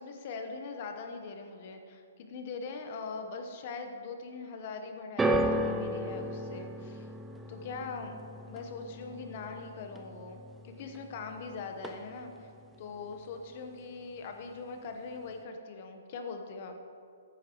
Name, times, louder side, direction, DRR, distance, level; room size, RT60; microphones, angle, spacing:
voice 1, 0.0-7.1 7.5-8.1 8.5-10.4 10.6-12.5 12.8-16.8, left 4 dB, 45° left, 5 dB, 1.1 m, -41 dB
sound 1, 5.2-11.5 11.7-12.4 13.1-13.2, right 1 dB, 10° right, 0.5 m, -34 dB
13.5 x 9.1 x 3.1 m, 2.5 s
hypercardioid pair, 155°, 0 cm